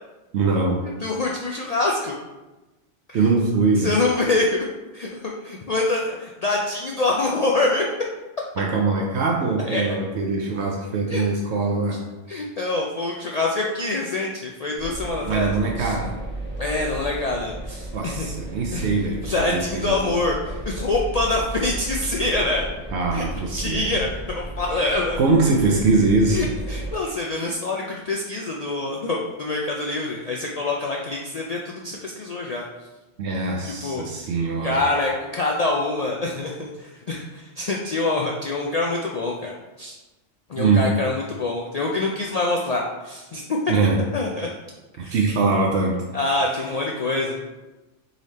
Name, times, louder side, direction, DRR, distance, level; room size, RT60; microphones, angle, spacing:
voice 1, 0.3-0.8 3.1-4.0 8.6-12.0 15.3-16.2 17.9-20.1 22.9-24.0 24.7-26.5 27.4-27.5 33.2-34.8 40.6-40.9 43.7-44.0 45.0-46.0 46.3-46.8, right 3 dB, 70° right, 1 dB, 0.9 m, -22 dB
voice 2, 1.0-2.1 3.1-3.2 3.8-4.6 4.9-5.1 5.4-7.8 9.7-9.9 11.1-11.2 12.3-15.5 15.8-15.9 16.6-18.3 18.7-18.9 19.2-22.7 23.1-23.2 23.5-25.2 26.3-32.6 33.8-34.0 34.6-39.9 40.5-43.4 44.1-44.5 45.0-45.1 46.1-47.4, left 2 dB, 70° left, -1 dB, 0.3 m, -25 dB
sound 1, 14.8-26.9, right 1 dB, 10° right, 0.7 m, -34 dB
3.9 x 3.3 x 4.0 m, 1.1 s
omnidirectional pair, 1.2 m